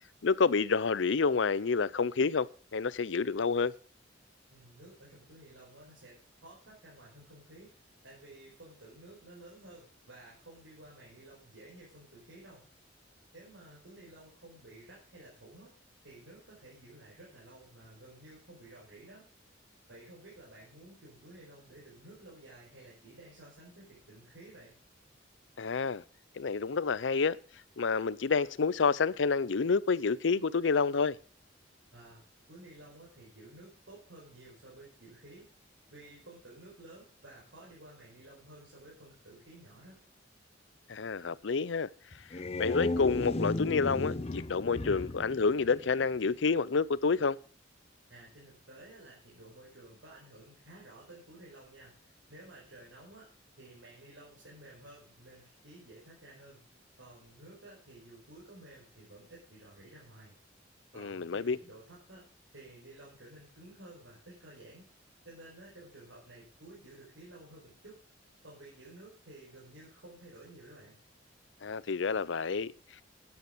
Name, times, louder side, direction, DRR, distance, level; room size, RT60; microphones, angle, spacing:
voice 1, 0.2-3.7 25.6-26.0 26.4-27.4 27.8-31.2 40.9-41.9 42.6-47.4 61.0-61.6 71.6-72.7, left 4 dB, 75° left, 0.6 m, -29 dB
voice 2, 4.5-7.7 8.0-12.6 13.3-15.7 16.0-19.3 19.9-24.8 31.9-32.2 32.5-35.5 35.9-40.0 48.1-53.3 53.6-56.6 57.0-60.3 60.9-62.3 62.5-64.8 65.3-68.0 68.4-71.0, right 1 dB, 85° right, 5.0 m, -53 dB
sound 1, 42.1-46.3, left 2 dB, 35° left, 0.6 m, -35 dB
12.5 x 9.6 x 5.1 m
head